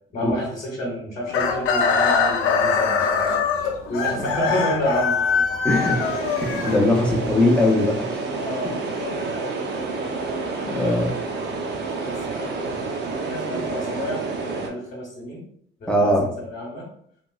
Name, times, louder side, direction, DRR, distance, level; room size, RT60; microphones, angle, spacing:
voice 1, 0.1-3.3 3.9-5.2 6.8-7.3 8.4-9.6 10.0-11.0 11.3-15.4 15.8-16.9, equal, 40° left, -3 dB, 0.8 m, -30 dB
Chicken rooster, 1.3-7.3, left 5 dB, 70° left, 0.5 m, -22 dB
voice 2, 5.6-6.1 6.4-8.2 10.7-11.1 15.9-16.3, left 1 dB, 5° left, -1 dB, 0.5 m, -20 dB
sound 1, 5.7-14.7, right 3 dB, 55° right, 0.6 m, -29 dB
3.0 x 2.9 x 2.3 m, 0.66 s
cardioid pair, 155°, 21 cm